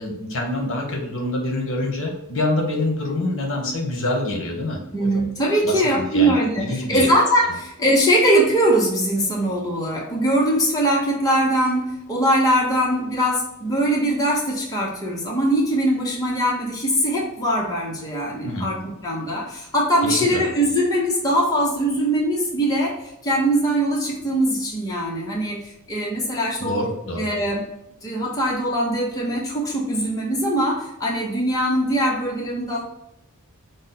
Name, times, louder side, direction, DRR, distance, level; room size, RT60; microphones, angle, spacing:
voice 1, 0.0-4.8 5.6-7.1 18.4-18.7 20.0-20.4 26.6-27.2, left 1 dB, 60° left, 1 dB, 1.0 m, -26 dB
voice 2, 4.9-18.8 19.0-23.0 23.2-26.9 27.2-27.7 28.0-32.8, right 1 dB, 15° left, -3 dB, 0.8 m, -21 dB
5.1 x 2.1 x 4.0 m, 0.84 s
head